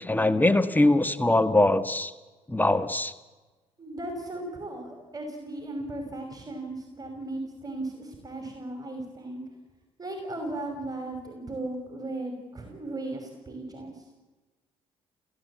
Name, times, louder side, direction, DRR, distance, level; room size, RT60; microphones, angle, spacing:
voice 1, 0.0-2.1 2.5-3.1, left 2 dB, 15° left, 10 dB, 1.6 m, -22 dB
voice 2, 3.8-9.4 10.0-14.0, right 2 dB, 30° right, 3 dB, 5.6 m, -36 dB
30.0 x 16.0 x 8.5 m, 1.2 s
hypercardioid pair, 50°, 14 cm